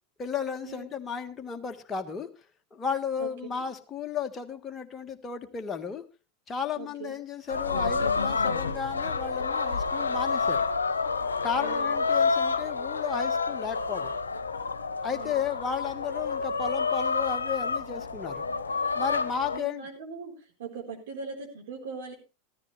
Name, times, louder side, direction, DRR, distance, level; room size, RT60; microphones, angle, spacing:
voice 1, 0.2-2.3 2.7-6.0 6.5-10.7 11.4-14.1 15.0-18.5 18.9-19.8, left 7 dB, 25° left, 5 dB, 1.5 m, -34 dB
voice 2, 6.8-7.2 11.5-12.0 15.1-15.5 19.5-22.1, right 5 dB, 65° right, 1 dB, 3.9 m, -40 dB
sound 1, 7.5-19.6, left 4 dB, 80° left, 0.9 m, -29 dB
14.5 x 13.5 x 3.2 m, 0.31 s
figure-of-eight pair, 85°, 0 cm